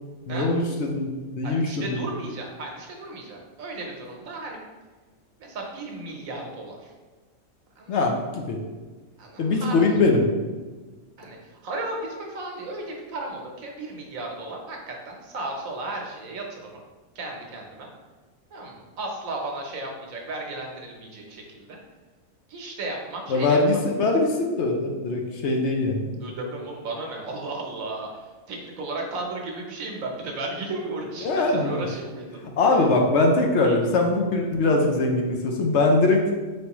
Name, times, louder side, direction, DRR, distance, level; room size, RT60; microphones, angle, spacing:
voice 1, 0.3-2.0 7.9-8.6 9.4-10.2 23.3-26.1 31.2-31.8 32.6-36.2, left 2 dB, 65° left, 1 dB, 0.8 m, -22 dB
voice 2, 1.4-4.6 5.4-6.9 7.8-8.0 9.2-9.9 11.2-16.8 17.1-17.9 18.5-21.8 22.5-23.6 26.2-32.8 33.6-33.8, right 2 dB, 85° right, 1 dB, 1.2 m, -35 dB
4.6 x 3.2 x 2.9 m, 1.3 s
omnidirectional pair, 1.4 m